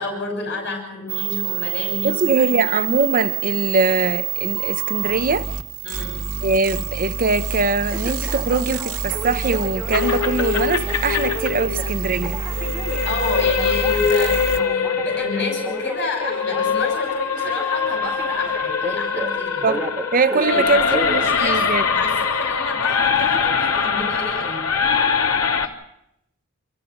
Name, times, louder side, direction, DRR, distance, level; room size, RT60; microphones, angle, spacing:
voice 1, 0.0-2.8 5.8-6.2 13.0-19.7 20.5-24.7, left 2 dB, 50° left, 6.4 m, -29 dB
sound 1, 1.1-14.6, right 7 dB, 85° right, 1.7 m, -27 dB
voice 2, 2.0-5.5 6.4-12.4 19.6-19.8 20.1-21.9, right 3 dB, 40° right, 0.8 m, -22 dB
Telephone, 4.6-5.1 7.9-22.1 22.6-23.1, right 1 dB, 5° right, 2.8 m, -33 dB
sound 2, 9.9-25.7, left 6 dB, 80° left, 2.8 m, -23 dB
27.5 x 14.5 x 8.0 m
head